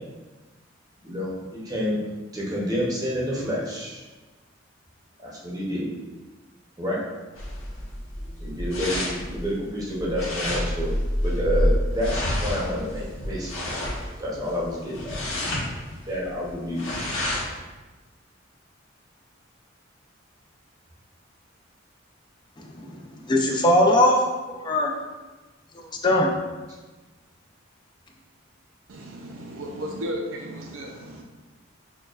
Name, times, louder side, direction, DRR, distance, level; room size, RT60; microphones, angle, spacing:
voice 1, 1.0-2.0 2.3-4.0 5.2-5.9 6.8-7.0 8.4-10.9 11.2-13.7 14.2-15.2 16.1-16.8, equal, 20° right, -5 dB, 0.8 m, -29 dB
sound 1, 7.4-17.6, left 1 dB, 85° left, 1.1 m, -28 dB
voice 2, 23.3-24.2 24.6-24.9 25.8-26.3, left 1 dB, 25° left, 1 dB, 0.4 m, -20 dB
voice 3, 28.9-31.2, equal, 80° right, 0 dB, 0.5 m, -34 dB
6.3 x 2.3 x 2.4 m, 1.2 s
head